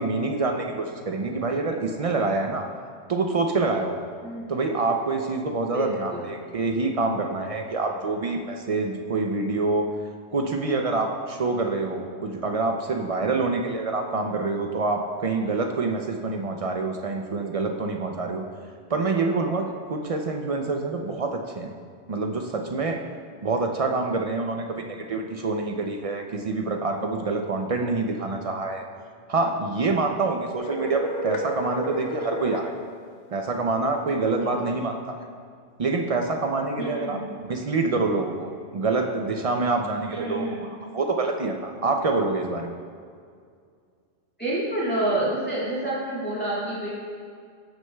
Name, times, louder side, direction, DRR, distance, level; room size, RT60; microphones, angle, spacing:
voice 1, 0.0-2.6 3.1-4.0 4.5-9.9 10.3-18.4 18.9-21.7 22.1-23.0 23.4-28.8 29.3-32.7 33.3-35.1 35.8-37.2 37.5-40.5 40.9-42.7, right 3 dB, 60° right, 3 dB, 0.3 m, -26 dB
voice 2, 5.7-6.2 34.4-34.5 36.8-37.3 40.1-40.6 44.4-46.9, right 1 dB, 10° left, -9 dB, 2.0 m, -28 dB
sound 1, 30.6-32.7, right 1 dB, 55° left, 0.7 m, -32 dB
13.5 x 6.2 x 2.2 m, 2.2 s
omnidirectional pair, 1.2 m